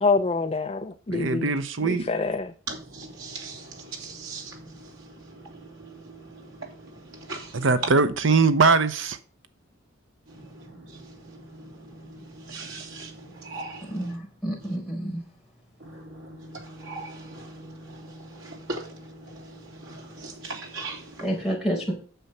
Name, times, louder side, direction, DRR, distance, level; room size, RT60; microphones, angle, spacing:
voice 1, 0.0-1.5 1.8-2.5, left 3 dB, 30° left, 0.6 m, -25 dB
voice 2, 1.1-2.1 7.5-9.2, right 4 dB, 70° right, 0.8 m, -21 dB
voice 3, 2.7-4.7 5.8-6.7 7.1-7.7 10.9-11.0 11.5-14.1 15.8-21.1, right 3 dB, 90° right, 3.2 m, -40 dB
voice 4, 13.9-15.2 21.2-21.9, right 1 dB, 5° right, 4.4 m, -29 dB
9.1 x 7.0 x 5.6 m
head